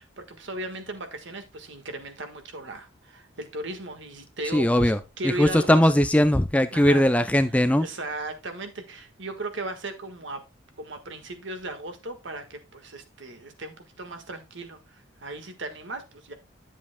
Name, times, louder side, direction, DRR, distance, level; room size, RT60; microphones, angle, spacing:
voice 1, 0.0-4.9 5.2-5.8 6.7-7.1 7.8-10.4 10.8-16.3, right 2 dB, 60° right, 1.5 m, -36 dB
voice 2, 4.5-5.0 5.2-7.9, left 1 dB, 5° left, 0.3 m, -20 dB
11.0 x 7.2 x 2.2 m
head